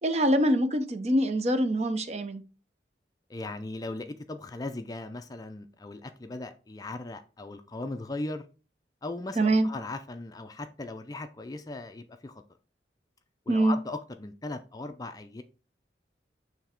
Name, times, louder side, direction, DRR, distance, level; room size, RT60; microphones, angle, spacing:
voice 1, 0.0-2.4 9.4-9.7 13.5-13.8, right 1 dB, 35° right, 0.5 m, -24 dB
voice 2, 3.3-8.4 9.0-12.4 13.5-15.4, left 2 dB, 20° left, 0.4 m, -38 dB
7.0 x 3.3 x 4.3 m
head